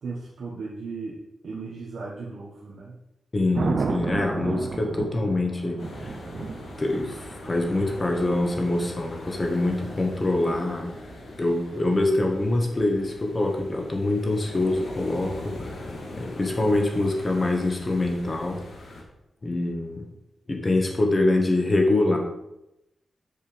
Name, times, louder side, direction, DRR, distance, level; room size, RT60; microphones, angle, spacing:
voice 1, 0.0-3.0 7.7-7.9, right 4 dB, 75° right, -4 dB, 1.5 m, -37 dB
voice 2, 3.3-6.5 6.8-10.9 11.4-15.9 16.2-18.6 19.4-20.0 20.5-22.2, left 2 dB, 25° left, 2 dB, 1.7 m, -25 dB
Thunder, 3.5-11.6 14.3-14.7, right 4 dB, 55° right, 0.9 m, -34 dB
sound 1, 5.8-19.0, left 2 dB, 80° left, 2.1 m, -41 dB
7.3 x 6.9 x 5.3 m, 0.88 s
wide cardioid pair, 130°, 0 cm